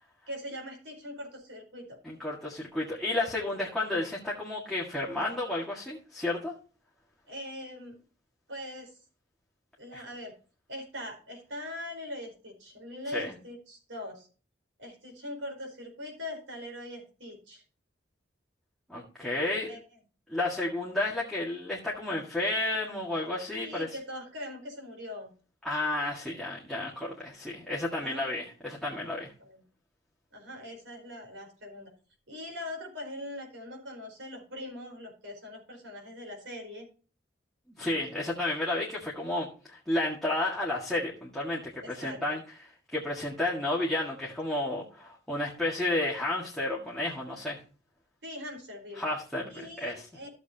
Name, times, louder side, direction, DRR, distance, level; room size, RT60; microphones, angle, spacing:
voice 1, 0.3-2.0 7.3-8.0 8.5-9.0 9.8-10.3 10.7-14.3 14.8-17.6 19.6-19.8 23.6-25.3 27.8-28.2 29.4-29.6 30.3-31.9 32.3-36.9 41.8-42.2 48.2-49.0 49.5-50.3, left 1 dB, 75° right, 2 dB, 4.6 m, -41 dB
voice 2, 2.0-6.5 9.9-10.0 13.1-13.3 18.9-19.7 20.3-23.9 25.6-29.3 37.8-42.4 42.9-47.6 49.0-50.1, left 2 dB, ahead, -5 dB, 1.8 m, -32 dB
14.5 x 7.3 x 2.8 m, 0.38 s
head